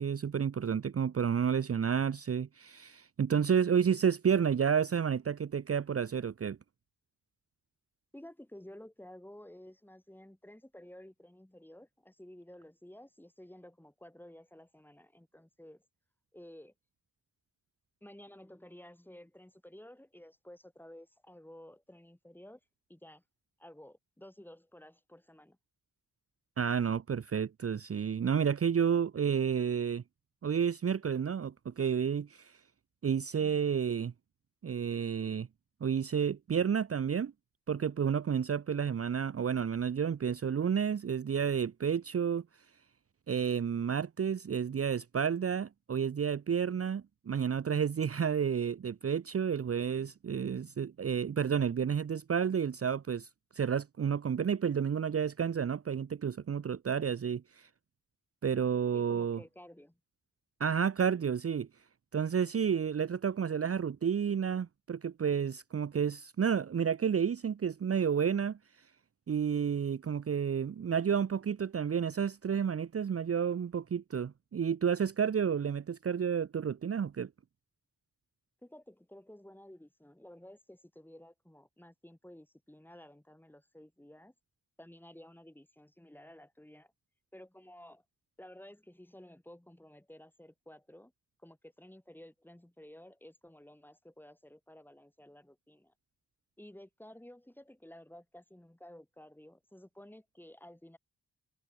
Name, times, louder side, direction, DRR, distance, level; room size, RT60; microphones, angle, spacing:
voice 1, 0.0-6.6 26.6-30.0 30.4-32.6 33.0-34.1 34.6-35.5 35.8-37.3 37.7-42.4 43.3-57.7 58.4-59.4 60.6-61.7 62.1-68.6 69.3-77.3, right 7 dB, 45° right, 0.7 m, -31 dB
voice 2, 8.1-15.8 16.3-16.7 18.0-22.6 22.9-23.2 23.6-25.6 33.3-33.6 58.9-60.0 78.6-84.3 84.8-86.9 87.3-88.0 88.4-91.1 91.4-95.9 96.6-101.0, left 1 dB, 5° left, 3.8 m, -53 dB
wide cardioid pair, 120°, 33 cm